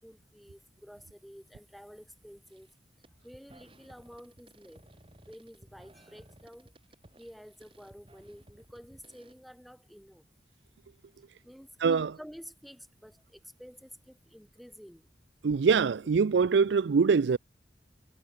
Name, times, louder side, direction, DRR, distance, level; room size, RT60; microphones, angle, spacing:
voice 1, 0.0-2.7 3.2-4.9 5.3-6.7 7.2-10.2 11.4-15.1, equal, ahead, 4.8 m, -51 dB
sound 1, 2.5-2.7 3.0-9.3, right 1 dB, 30° right, 3.2 m, -58 dB
voice 2, 11.8-12.1 15.4-17.4, right 5 dB, 85° right, 0.4 m, -24 dB
head